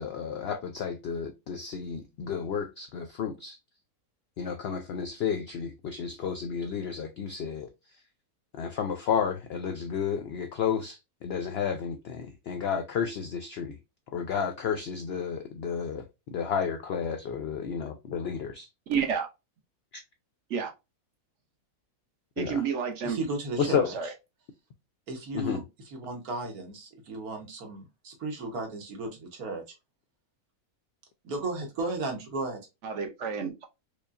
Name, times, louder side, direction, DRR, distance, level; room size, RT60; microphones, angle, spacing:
voice 1, 0.0-3.6 4.4-8.0 8.5-13.8 14.1-18.7 19.9-20.0 22.4-22.6 23.6-23.9 25.3-25.6, left 7 dB, 75° left, 0.5 m, -32 dB
voice 2, 18.9-19.3 20.5-20.7 22.4-23.2 23.8-24.1 32.8-33.7, right 6 dB, 60° right, 1.0 m, -30 dB
voice 3, 23.0-24.0 25.1-29.6 31.2-32.6, right 3 dB, 75° right, 1.6 m, -35 dB
5.0 x 2.2 x 2.4 m
omnidirectional pair, 1.6 m